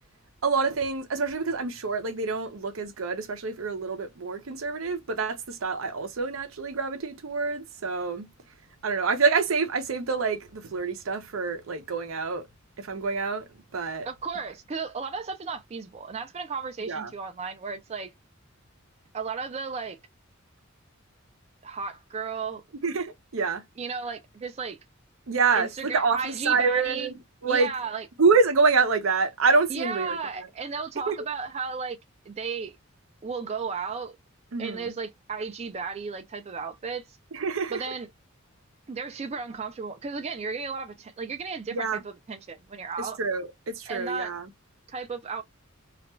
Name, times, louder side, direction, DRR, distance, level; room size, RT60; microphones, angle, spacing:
voice 1, 0.4-8.3 8.8-12.4 12.8-13.5 13.7-14.1 16.9-17.1 22.8-23.6 25.3-27.1 27.4-27.7 28.2-30.2 31.1-31.2 34.5-34.8 37.3-37.8 41.7-42.0 43.0-44.4, right 4 dB, 75° right, 0.6 m, -26 dB
voice 2, 14.0-18.1 19.1-20.0 21.6-22.6 23.8-24.8 25.5-27.1 27.4-28.1 29.7-32.0 32.3-32.7 33.2-34.2 34.6-37.0 37.7-38.1 38.9-43.2 43.9-44.3 44.9-45.4, right 5 dB, 30° right, 0.4 m, -34 dB
2.4 x 2.2 x 3.0 m
head